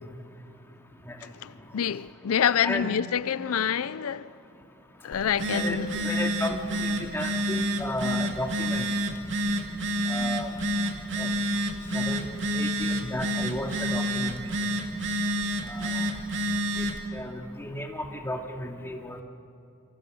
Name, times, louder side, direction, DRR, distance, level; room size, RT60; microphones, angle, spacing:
voice 1, 1.2-4.3 5.0-6.0, left 8 dB, 80° left, 0.5 m, -27 dB
Telephone, 5.1-17.1, equal, 60° right, 2.5 m, -29 dB
voice 2, 5.5-8.9 10.1-10.5 11.2-11.3 11.9-14.4 15.7-16.0 16.8-16.9 17.1-19.2, left 1 dB, 10° left, 2.3 m, -34 dB
28.5 x 26.0 x 6.3 m
head